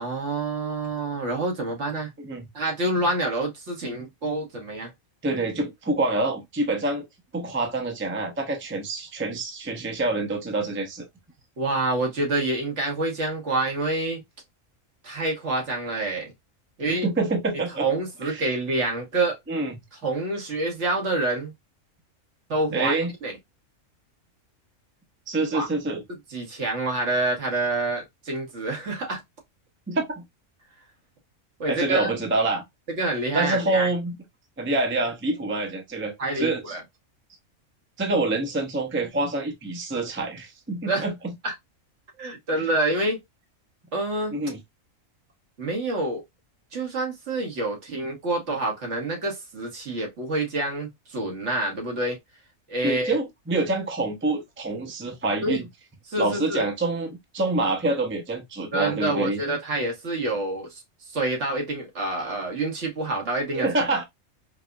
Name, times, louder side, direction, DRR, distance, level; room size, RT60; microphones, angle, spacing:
voice 1, 0.0-2.1 2.5-4.9 11.6-14.2 15.0-16.3 16.8-17.1 17.8-19.4 20.0-21.5 22.5-23.4 25.5-25.7 26.3-29.2 31.6-32.1 32.9-33.9 36.2-36.8 40.8-41.1 41.4-41.5 42.2-43.2 43.9-44.3 45.6-46.2 46.7-52.2 52.7-53.2 55.4-55.6 56.1-56.7 58.7-63.7, right 2 dB, 65° right, 1.4 m, -27 dB
voice 2, 5.2-7.0 7.3-11.0 17.0-17.9 18.2-18.5 19.5-19.8 22.7-23.1 25.3-26.0 29.9-30.2 31.7-32.6 33.3-34.2 34.6-36.8 38.0-41.3 42.6-42.7 44.3-44.6 52.8-55.7 56.2-59.4 63.5-64.0, right 2 dB, 15° right, 0.5 m, -26 dB
4.7 x 2.1 x 2.3 m
omnidirectional pair, 1.4 m